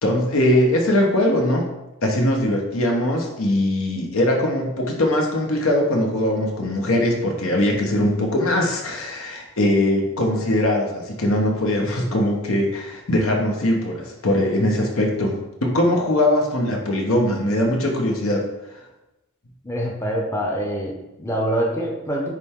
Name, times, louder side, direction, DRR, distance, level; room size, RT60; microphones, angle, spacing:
voice 1, 0.0-1.6 2.0-18.4, left 1 dB, 70° left, 1 dB, 1.2 m, -21 dB
voice 2, 19.6-22.3, right 1 dB, 15° left, -2 dB, 0.8 m, -25 dB
8.9 x 3.3 x 3.7 m, 0.99 s
head